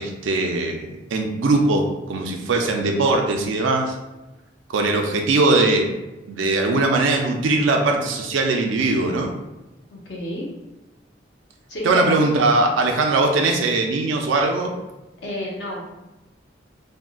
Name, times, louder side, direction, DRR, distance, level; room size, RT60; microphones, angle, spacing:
voice 1, 0.0-3.9 4.7-5.9 6.3-9.3 11.8-14.7, right 2 dB, 90° right, 2 dB, 0.4 m, -20 dB
voice 2, 9.9-10.5 11.7-12.2 15.2-15.9, left 1 dB, 65° left, -3 dB, 0.8 m, -30 dB
3.5 x 2.1 x 2.3 m, 1.0 s
head